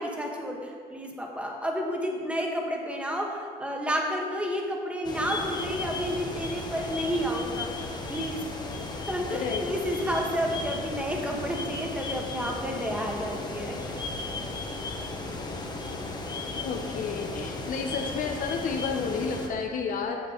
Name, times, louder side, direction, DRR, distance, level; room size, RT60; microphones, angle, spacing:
voice 1, 0.0-7.7 8.1-8.4 9.1-13.9, equal, 5° right, 0 dB, 1.2 m, -31 dB
sound 1, 5.0-19.5, left 3 dB, 25° left, 1.0 m, -35 dB
voice 2, 9.3-9.6 16.6-20.2, left 5 dB, 55° left, 2 dB, 0.8 m, -31 dB
9.1 x 6.9 x 3.8 m, 2.1 s
cardioid pair, 110°, 17 cm